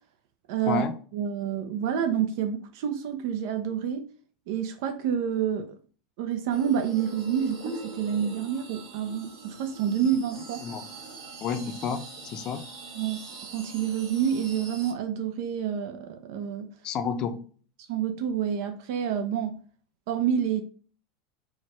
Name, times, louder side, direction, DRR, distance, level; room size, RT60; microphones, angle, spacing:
voice 1, 0.5-0.8 1.1-4.0 4.5-5.7 6.2-10.6 13.0-13.2 13.5-16.7 17.9-19.5 20.1-20.6, right 8 dB, 65° right, 0.5 m, -28 dB
sound 1, 6.5-14.9, right 2 dB, 85° right, 1.6 m, -43 dB
voice 2, 11.4-12.6 16.8-17.4, left 6 dB, 40° left, 0.5 m, -30 dB
4.5 x 2.2 x 4.4 m
supercardioid pair, 125°, 2 cm